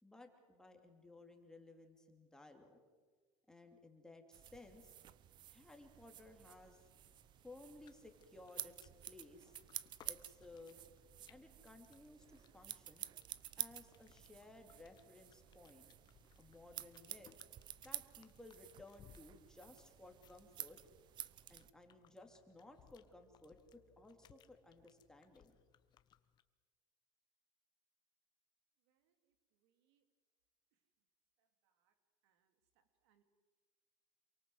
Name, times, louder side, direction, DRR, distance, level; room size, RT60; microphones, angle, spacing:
voice 1, 0.0-2.8 3.5-4.9 5.5-6.9 7.4-9.5 10.0-10.8 11.3-13.0 13.6-15.9 16.3-17.3 17.8-20.8 21.5-25.5, left 2 dB, 5° left, 3 dB, 2.8 m, -59 dB
sound 1, 4.3-21.7, right 11 dB, 35° right, 0.8 m, -51 dB
sound 2, 6.9-26.4, left 9 dB, 30° left, 1.2 m, -69 dB
voice 2, 29.6-30.0 31.8-31.9 32.2-32.5 33.0-33.2, right 10 dB, 85° right, 8 dB, 3.0 m, -80 dB
28.0 x 23.5 x 7.9 m, 1.4 s
cardioid pair, 155°, 13 cm